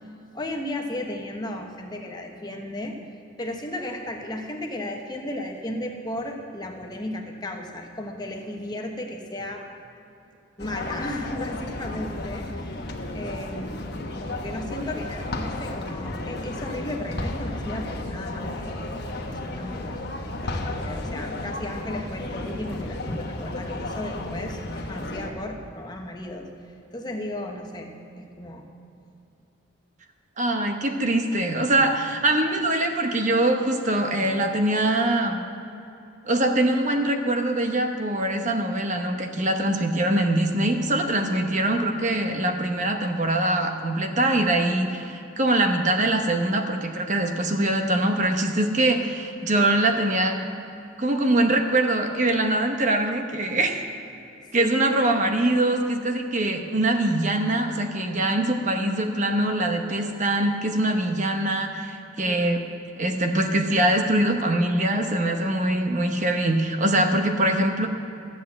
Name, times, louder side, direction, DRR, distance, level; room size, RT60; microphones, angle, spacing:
voice 1, 0.3-3.0 3.4-9.6 10.6-12.8 13.1-13.9 14.2-19.9 20.4-26.5 26.9-27.9 28.2-28.6 54.6-54.7 62.2-62.4, left 1 dB, 20° left, 2 dB, 1.1 m, -35 dB
sound 1, 10.6-25.3, left 2 dB, 55° left, 1.2 m, -33 dB
voice 2, 30.4-35.4 36.2-50.4 51.0-53.8 54.5-62.6 63.0-67.9, right 1 dB, 40° right, 4 dB, 0.9 m, -23 dB
13.0 x 8.0 x 7.5 m, 2.8 s
head